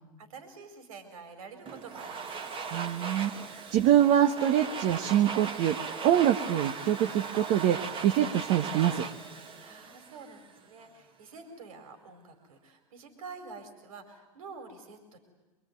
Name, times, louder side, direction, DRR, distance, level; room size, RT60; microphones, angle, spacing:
voice 1, 0.2-2.6 9.6-15.2, right 4 dB, 75° right, 7 dB, 4.9 m, -48 dB
Domestic sounds home sounds, 1.7-10.6, right 5 dB, 30° right, 2.2 m, -38 dB
voice 2, 2.7-5.8 6.0-9.0, right 11 dB, 45° right, 6 dB, 1.4 m, -25 dB
26.5 x 22.5 x 9.5 m, 1.2 s
hypercardioid pair, 110°, 18 cm